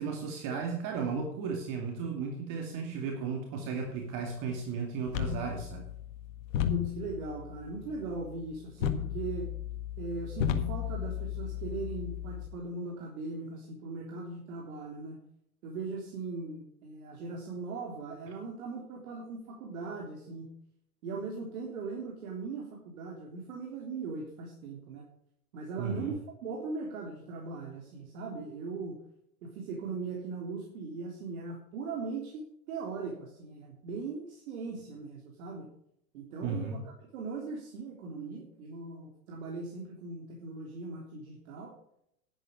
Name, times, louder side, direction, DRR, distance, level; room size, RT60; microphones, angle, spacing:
voice 1, 0.0-5.9 25.8-26.1 36.4-36.8, right 5 dB, 45° right, 3 dB, 2.3 m, -35 dB
sound 1, 5.1-12.5, left 10 dB, 60° left, 1.8 m, -35 dB
voice 2, 6.7-9.5 10.0-15.2 15.6-20.5 21.0-25.0 25.5-26.1 26.4-29.0 29.4-35.7 36.1-41.7, right 4 dB, 65° right, -1 dB, 3.4 m, -39 dB
11.0 x 10.5 x 5.2 m, 0.73 s
hypercardioid pair, 105°, 45 cm